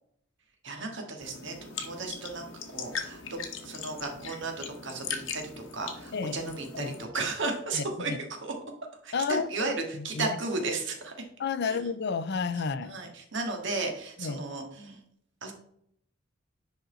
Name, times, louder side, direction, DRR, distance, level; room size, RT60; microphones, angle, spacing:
voice 1, 0.6-2.5 2.7-3.4 3.6-8.1 8.4-8.5 9.0-11.1 11.6-11.8 12.8-15.0 15.4-15.5, right 3 dB, 65° right, 1.9 m, -34 dB
sound 1, 1.2-7.0, left 6 dB, 75° left, 1.2 m, -40 dB
voice 2, 6.1-6.9 7.7-8.2 9.1-10.3 11.4-13.0 14.2-14.4, left 5 dB, 60° left, 0.5 m, -32 dB
10.0 x 4.1 x 4.0 m
head